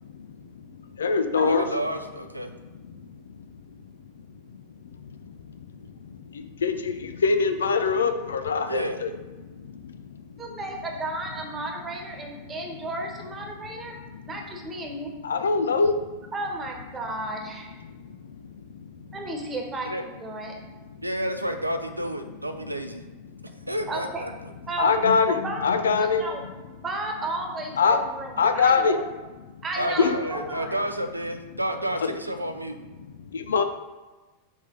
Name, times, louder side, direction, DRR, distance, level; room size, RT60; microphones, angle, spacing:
voice 1, 0.0-1.6 2.5-3.5 5.0-9.1 9.5-10.5 14.2-14.3 15.2-16.2 17.9-19.2 23.3-23.6 24.8-26.2 27.8-28.0 28.4-29.0 29.5-29.6 30.0-30.1 32.0-32.1 33.3-33.6, left 5 dB, 70° left, 8 dB, 0.5 m, -25 dB
voice 2, 1.4-2.5 8.7-9.0 19.8-20.0 21.0-23.0 23.7-24.3 29.8-32.8, right 1 dB, 85° right, 6 dB, 0.5 m, -30 dB
voice 3, 10.4-14.0 14.2-15.2 16.3-17.7 19.1-20.5 23.9-24.2 24.7-25.1 25.4-25.6 26.0-29.0 29.6-30.8, right 2 dB, 20° right, 1 dB, 1.3 m, -34 dB
6.3 x 3.6 x 5.2 m, 1.2 s
figure-of-eight pair, 90°, 0 cm